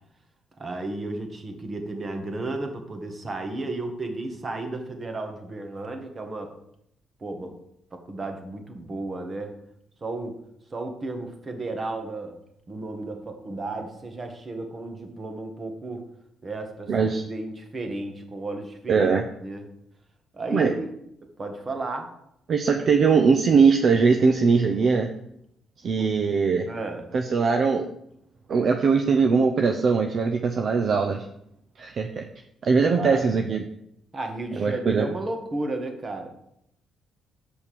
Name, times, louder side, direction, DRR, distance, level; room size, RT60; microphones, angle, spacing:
voice 1, 0.6-6.5 7.2-7.5 8.1-9.5 10.0-10.3 10.7-12.4 12.7-16.0 16.4-19.1 19.4-19.6 20.3-20.9 21.4-22.1 26.0-26.1 26.7-27.1 33.0-33.3 34.1-36.3, right 2 dB, 35° right, 5 dB, 1.8 m, -33 dB
voice 2, 16.9-17.2 18.9-19.2 20.5-20.8 22.5-25.1 25.8-26.7 27.1-27.8 28.5-31.3 31.8-32.3 32.6-33.6 34.6-35.1, right 5 dB, 55° right, 5 dB, 0.7 m, -21 dB
6.6 x 5.6 x 7.1 m, 0.76 s
cardioid pair, 90°, 0 cm